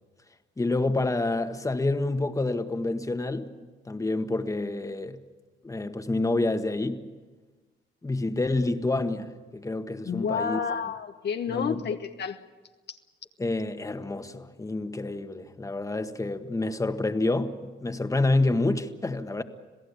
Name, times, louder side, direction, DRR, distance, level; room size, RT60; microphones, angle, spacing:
voice 1, 0.6-3.5 3.8-5.2 5.6-7.1 8.0-10.6 11.5-11.8 13.4-19.4, left 2 dB, 15° left, 1.6 m, -28 dB
voice 2, 10.0-12.4 12.9-13.0, left 7 dB, 60° left, 1.1 m, -30 dB
27.0 x 17.0 x 8.6 m
cardioid pair, 90°, 20 cm